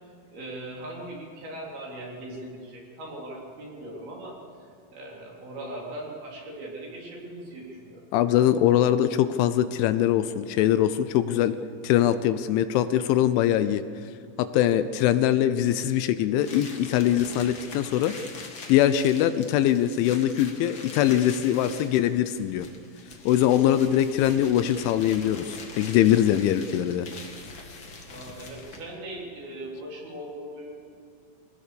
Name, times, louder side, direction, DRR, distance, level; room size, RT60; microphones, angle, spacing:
voice 1, 0.3-8.1 28.0-30.7, right 1 dB, 50° right, -2 dB, 5.4 m, -39 dB
voice 2, 8.1-11.6 11.8-13.8 14.5-18.1 18.7-22.7 23.3-27.2, left 11 dB, 80° left, 11 dB, 3.0 m, -22 dB
sound 1, 16.4-29.0, left 4 dB, 50° left, 1.4 m, -43 dB
24.5 x 19.0 x 6.9 m, 2.3 s
omnidirectional pair, 5.6 m